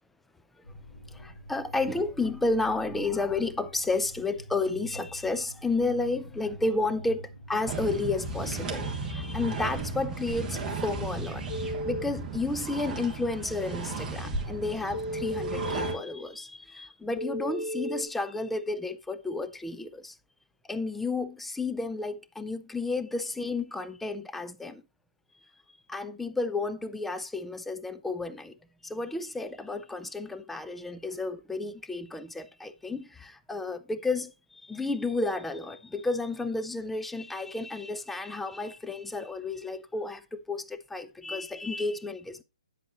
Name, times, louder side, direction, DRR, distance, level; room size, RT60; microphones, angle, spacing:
sound 1, 0.6-8.5, equal, 85° left, 6.1 m, -46 dB
voice 1, 1.1-20.2 20.7-24.8 25.9-28.5 28.8-42.4, left 3 dB, 5° left, 0.5 m, -32 dB
sound 2, 7.7-15.9, right 3 dB, 15° right, 1.3 m, -35 dB
Telephone, 11.5-12.0 14.9-15.9 17.2-18.0, equal, 50° left, 1.5 m, -34 dB
9.5 x 7.8 x 2.9 m
figure-of-eight pair, 135°, 4 cm